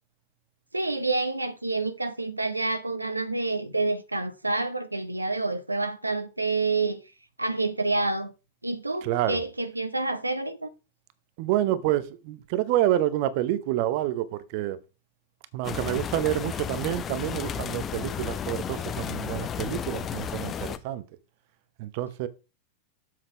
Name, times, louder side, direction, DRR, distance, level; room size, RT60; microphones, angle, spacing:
voice 1, 0.7-7.0 7.4-8.3 8.6-10.7, right 3 dB, 85° right, 0.8 m, -28 dB
voice 2, 9.0-9.4 11.4-14.8 15.5-21.0 21.8-22.3, right 13 dB, 45° right, 0.8 m, -28 dB
sound 1, 15.6-20.8, left 8 dB, 25° left, 0.7 m, -33 dB
7.6 x 5.9 x 4.6 m
figure-of-eight pair, 90°, 0 cm